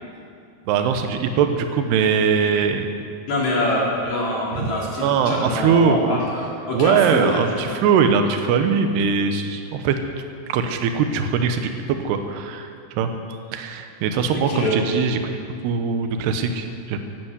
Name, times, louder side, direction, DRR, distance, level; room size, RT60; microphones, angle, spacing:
voice 1, 0.7-2.9 4.6-4.7 5.0-6.2 6.7-10.0 10.5-12.7 13.0-15.2 15.6-17.0, right 6 dB, 75° right, 7 dB, 2.7 m, -21 dB
voice 2, 3.3-7.4 14.5-14.8, left 1 dB, 40° left, -5 dB, 3.9 m, -24 dB
15.0 x 11.0 x 8.0 m, 2.4 s
omnidirectional pair, 5.5 m